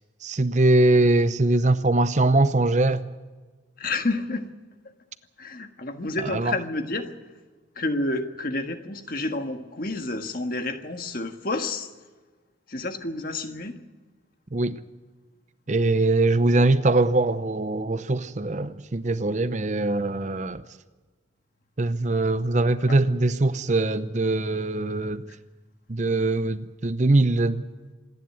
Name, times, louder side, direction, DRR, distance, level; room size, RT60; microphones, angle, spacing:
voice 1, 0.2-3.1 6.2-6.5 14.5-14.8 15.7-20.6 21.8-25.2 25.9-27.6, right 2 dB, 40° right, 0.7 m, -22 dB
voice 2, 3.8-4.5 5.4-7.1 7.7-11.9 12.7-13.8 22.9-23.0 25.2-25.4, left 2 dB, 45° left, 1.6 m, -29 dB
26.5 x 11.0 x 9.4 m
head